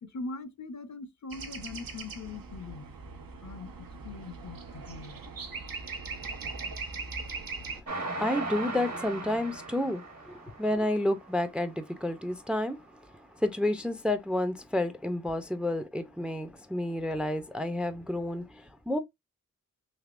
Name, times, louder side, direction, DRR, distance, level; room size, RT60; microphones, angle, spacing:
voice 1, 0.0-2.9 3.4-3.7 4.0-5.2 7.2-7.3, left 3 dB, 60° left, 0.6 m, -41 dB
sound 1, 1.3-7.8, right 4 dB, 85° right, 0.7 m, -40 dB
Train, 7.9-11.3 11.8-11.9 12.2-12.3, right 2 dB, 50° right, 1.0 m, -37 dB
voice 2, 8.0-12.8 13.4-19.0, left 1 dB, 5° right, 0.4 m, -30 dB
3.4 x 2.8 x 2.4 m
wide cardioid pair, 50°, 33 cm